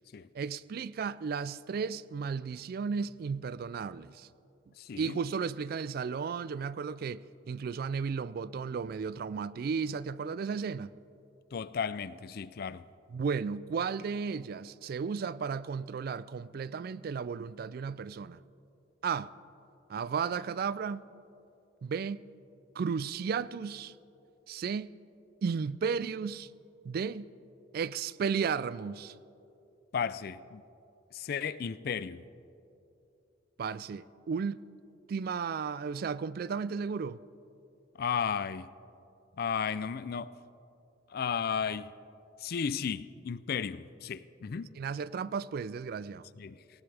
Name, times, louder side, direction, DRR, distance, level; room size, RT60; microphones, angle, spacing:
voice 1, 0.3-4.3 5.0-10.9 13.1-18.4 19.0-19.3 19.9-21.0 21.8-22.2 22.8-23.9 24.5-24.9 25.4-26.5 26.8-27.3 27.7-29.2 33.6-34.6 35.1-37.2 44.7-46.3, right 6 dB, 50° right, 0.3 m, -34 dB
voice 2, 4.8-5.2 11.5-12.8 29.9-30.6 31.1-32.2 38.0-38.7 39.4-40.3 41.1-41.9 42.4-44.7 46.4-46.6, left 6 dB, 50° left, 0.4 m, -34 dB
19.0 x 18.0 x 3.4 m
head